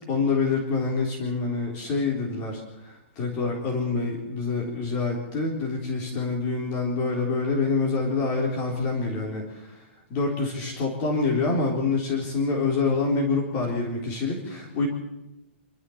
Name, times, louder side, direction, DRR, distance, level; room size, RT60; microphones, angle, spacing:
voice 1, 0.1-9.8 10.1-14.9, left 4 dB, 20° left, -1 dB, 3.8 m, -26 dB
28.0 x 13.0 x 7.2 m, 0.90 s
hypercardioid pair, 180°, 7 cm